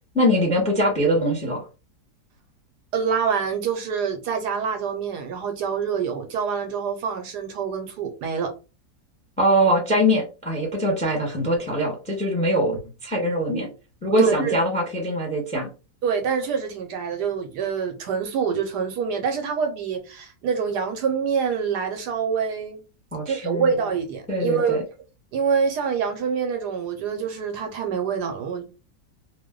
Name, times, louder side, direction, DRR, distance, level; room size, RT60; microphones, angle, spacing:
voice 1, 0.1-1.6 9.4-13.7 14.0-15.7 23.1-23.6 24.3-24.8, equal, 5° left, 0.8 m, -22 dB
voice 2, 2.9-8.5 14.2-14.6 16.0-22.8 23.3-24.8 25.3-28.6, right 6 dB, 75° right, 1.1 m, -26 dB
2.8 x 2.1 x 3.6 m
omnidirectional pair, 1.9 m